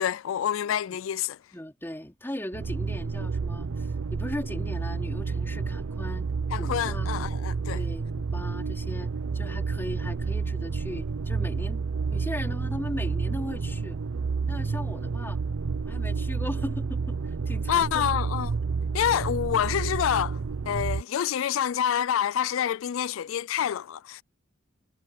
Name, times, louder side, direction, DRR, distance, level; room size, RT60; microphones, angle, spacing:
voice 1, 0.0-1.4 6.5-7.8 17.7-18.5 18.9-20.4 20.7-24.2, left 9 dB, 70° left, 0.3 m, -27 dB
voice 2, 1.5-6.3 6.6-7.3 7.7-11.8 12.1-14.0 14.5-15.4 15.8-18.1, left 1 dB, 10° left, 3.0 m, -38 dB
sound 1, 2.5-21.0, right 4 dB, 75° right, 0.6 m, -30 dB
head